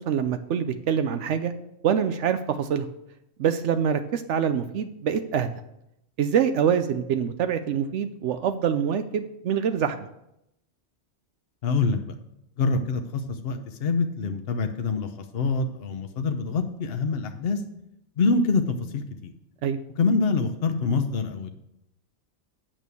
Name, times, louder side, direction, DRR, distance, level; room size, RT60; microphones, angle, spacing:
voice 1, 0.1-1.5 1.8-2.9 3.4-5.5 6.2-10.1 19.6-19.8, right 8 dB, 75° right, 9 dB, 0.9 m, -25 dB
voice 2, 11.6-12.2 12.6-17.6 18.2-19.3 20.0-21.5, left 4 dB, 55° left, 6 dB, 0.9 m, -25 dB
9.0 x 6.2 x 6.9 m, 0.82 s
omnidirectional pair, 1.2 m